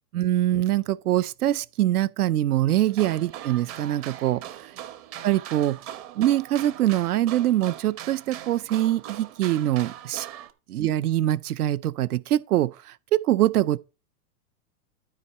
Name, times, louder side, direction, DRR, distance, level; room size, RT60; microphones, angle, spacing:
voice 1, 0.1-4.5 5.2-5.9 6.1-10.3 10.7-13.8, right 13 dB, 80° right, 0.6 m, -24 dB
sound 1, 2.9-10.5, right 11 dB, 30° right, 0.9 m, -40 dB
13.0 x 4.8 x 4.2 m
hypercardioid pair, 130°, 45 cm